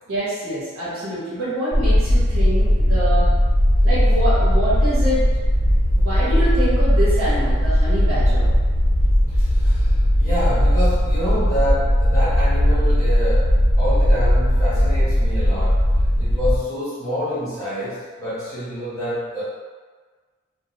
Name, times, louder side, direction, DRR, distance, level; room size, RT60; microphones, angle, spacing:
voice 1, 0.1-3.2 3.8-5.2 5.9-8.5, right 1 dB, 70° right, -9 dB, 1.1 m, -25 dB
sound 1, 1.7-16.6, equal, 90° left, 0.7 m, -17 dB
voice 2, 9.3-15.8 16.2-19.4, equal, 15° left, -14 dB, 1.2 m, -27 dB
2.3 x 2.3 x 2.8 m, 1.4 s
head